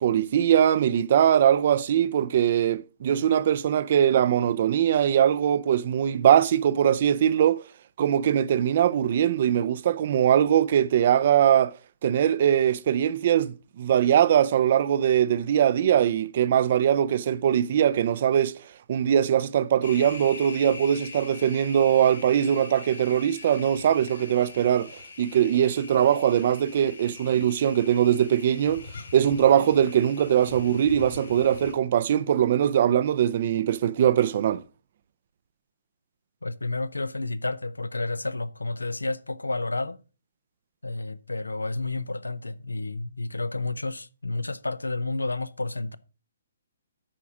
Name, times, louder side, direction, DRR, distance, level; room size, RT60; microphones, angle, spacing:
voice 1, 0.0-7.6 8.0-11.8 12.0-18.6 18.9-24.9 25.2-28.8 29.1-34.6, right 10 dB, 45° right, 0.5 m, -21 dB
sound 1, 19.8-31.7, left 4 dB, 65° left, 3.0 m, -43 dB
voice 2, 36.4-40.0 40.8-46.0, left 2 dB, 80° left, 0.6 m, -30 dB
8.7 x 5.8 x 4.9 m
figure-of-eight pair, 130°, 0 cm